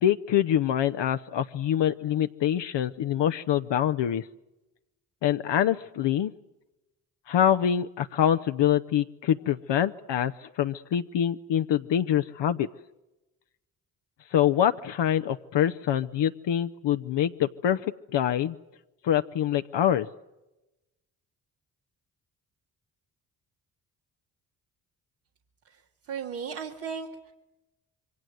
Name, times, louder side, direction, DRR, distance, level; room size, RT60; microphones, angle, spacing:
voice 1, 0.0-4.3 5.2-6.3 7.3-12.7 14.3-18.6 19.0-20.1, left 10 dB, 60° left, 8 dB, 0.9 m, -25 dB
voice 2, 26.1-27.3, right 6 dB, 85° right, -2 dB, 2.3 m, -36 dB
27.0 x 23.5 x 7.8 m, 0.99 s
hypercardioid pair, 45°, 48 cm